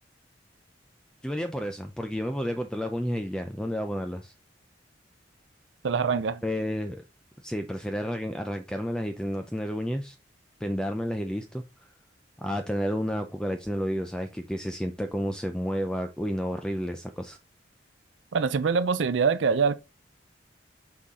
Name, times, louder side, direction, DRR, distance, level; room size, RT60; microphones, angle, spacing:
voice 1, 1.2-4.3 6.4-7.0 7.4-10.2 10.6-11.6 12.4-17.4, equal, 5° left, 0.5 m, -31 dB
voice 2, 5.8-6.4 18.3-19.7, right 5 dB, 80° right, 0.5 m, -24 dB
6.2 x 5.7 x 3.7 m
head